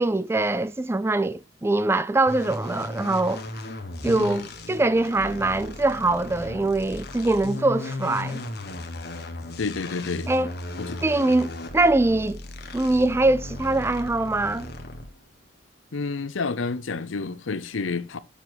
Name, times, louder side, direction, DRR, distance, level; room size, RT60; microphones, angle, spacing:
voice 1, 0.0-3.4 4.0-8.4 10.3-10.5 11.0-12.4 12.7-14.7, right 2 dB, 15° right, 0.3 m, -23 dB
sound 1, 2.3-15.2, left 2 dB, 55° left, 1.5 m, -36 dB
voice 2, 4.0-4.5 9.6-10.3 10.8-11.0 15.9-18.2, left 4 dB, 85° left, 0.7 m, -30 dB
7.3 x 6.9 x 3.9 m
head